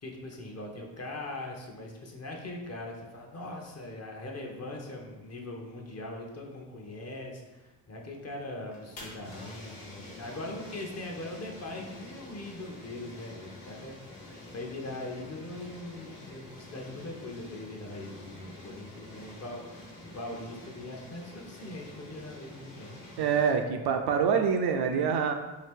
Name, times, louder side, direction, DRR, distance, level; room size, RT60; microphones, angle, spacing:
voice 1, 0.0-23.0, left 2 dB, 35° left, 1 dB, 0.7 m, -41 dB
sound 1, 8.6-23.5, left 2 dB, 50° left, 1.1 m, -47 dB
voice 2, 23.2-25.3, right 6 dB, 60° right, 5 dB, 0.5 m, -26 dB
2.9 x 2.5 x 3.5 m, 1.1 s
supercardioid pair, 65°, 46 cm